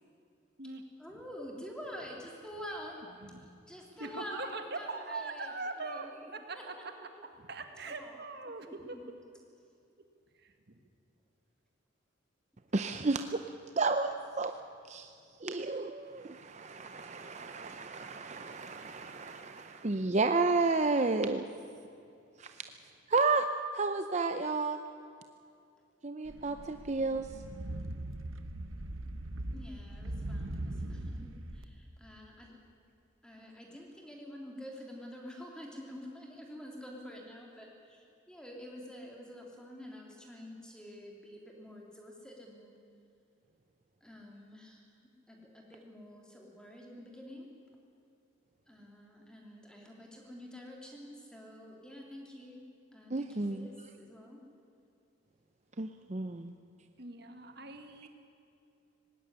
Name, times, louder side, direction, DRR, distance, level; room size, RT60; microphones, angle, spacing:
voice 1, 1.0-3.1 3.4-5.5 5.8-6.8 7.1-7.3 7.7-8.1 8.5-9.1 29.5-32.5 33.2-42.7 44.0-44.9 45.3-47.5 48.7-52.6 52.9-54.4, equal, 5° left, -1 dB, 3.1 m, -48 dB
voice 2, 4.0-6.7 7.4-9.0 10.4-10.8 30.6-31.1 57.0-58.1, right 3 dB, 50° right, 6 dB, 1.8 m, -42 dB
voice 3, 12.7-13.4 13.8-14.5 14.9-15.1 15.4-21.4 22.4-22.6 23.1-23.5 23.7-24.8 26.0-27.5 53.1-53.7 55.8-56.5, right 3 dB, 35° right, 7 dB, 0.6 m, -32 dB
sound 1, 26.3-31.6, right 1 dB, 80° right, 1.2 m, -40 dB
19.0 x 16.5 x 9.9 m, 2.5 s
head